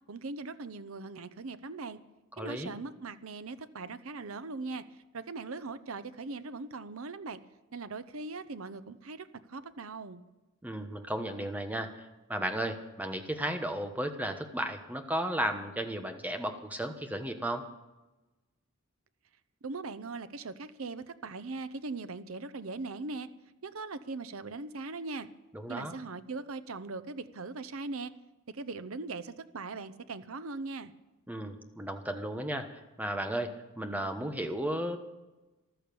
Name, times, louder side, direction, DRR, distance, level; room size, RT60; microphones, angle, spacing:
voice 1, 0.1-2.0 2.4-4.8 5.1-7.4 7.7-10.2 19.6-23.3 23.6-25.3 25.7-28.1 28.5-30.9, right 3 dB, 75° right, 13 dB, 0.8 m, -40 dB
voice 2, 2.4-2.7 10.6-17.7 25.5-26.0 31.3-35.0, right 1 dB, 10° right, 6 dB, 1.2 m, -34 dB
14.5 x 12.5 x 6.9 m, 1.1 s
head